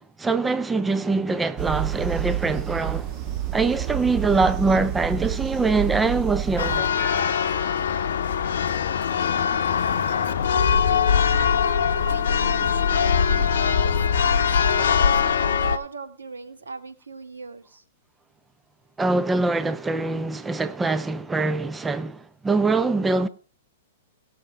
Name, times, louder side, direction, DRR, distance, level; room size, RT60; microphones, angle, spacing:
voice 1, 0.0-3.1 3.5-6.9 19.0-23.3, right 3 dB, 10° right, 0.6 m, -23 dB
sound 1, 1.6-6.8, right 11 dB, 35° right, 1.3 m, -29 dB
voice 2, 3.6-4.0 10.5-17.8, right 3 dB, 80° right, 1.4 m, -37 dB
Church bell, 6.6-15.8, left 7 dB, 65° left, 0.8 m, -22 dB
Percussion, 7.0-11.6, left 1 dB, 10° left, 2.0 m, -45 dB
18.0 x 6.4 x 4.7 m
figure-of-eight pair, 105°, 0 cm